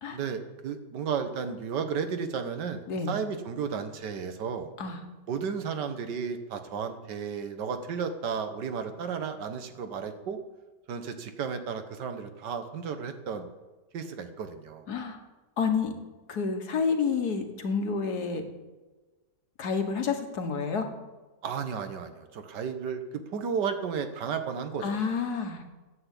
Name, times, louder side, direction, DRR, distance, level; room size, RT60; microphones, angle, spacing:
voice 1, 0.1-4.7 5.3-10.4 10.9-13.5 13.9-14.9 21.4-25.0, right 6 dB, 80° right, 8 dB, 1.7 m, -33 dB
voice 2, 14.9-15.2 15.6-15.9 16.3-18.4 19.6-20.9 24.8-25.6, left 5 dB, 65° left, 6 dB, 1.8 m, -29 dB
10.5 x 8.0 x 8.2 m, 1.2 s
omnidirectional pair, 1.8 m